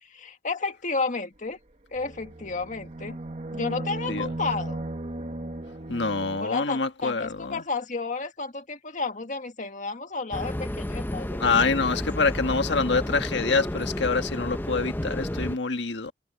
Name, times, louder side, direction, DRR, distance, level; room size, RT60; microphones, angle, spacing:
voice 1, 0.0-1.6 1.9-3.2 3.5-4.9 6.4-11.4 11.8-12.0, left 4 dB, 45° left, 1.7 m, -32 dB
sound 1, 2.0-6.4, right 2 dB, 40° right, 1.3 m, -36 dB
voice 2, 5.9-7.6 11.4-16.1, left 4 dB, 75° left, 1.6 m, -26 dB
sound 2, 10.3-15.6, left 1 dB, 10° left, 0.7 m, -31 dB
head